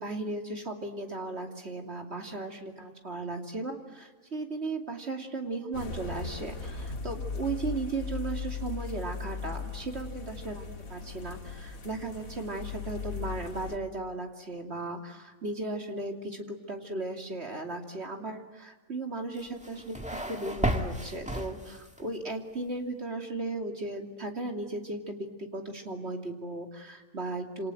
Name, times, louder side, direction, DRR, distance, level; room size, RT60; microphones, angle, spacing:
voice 1, 0.0-27.7, right 2 dB, 50° right, 3 dB, 3.0 m, -36 dB
sound 1, 5.7-13.8, left 5 dB, 75° left, 2.4 m, -38 dB
sound 2, 19.4-22.1, right 1 dB, 5° right, 1.8 m, -33 dB
27.5 x 27.0 x 7.9 m, 1.3 s
omnidirectional pair, 1.5 m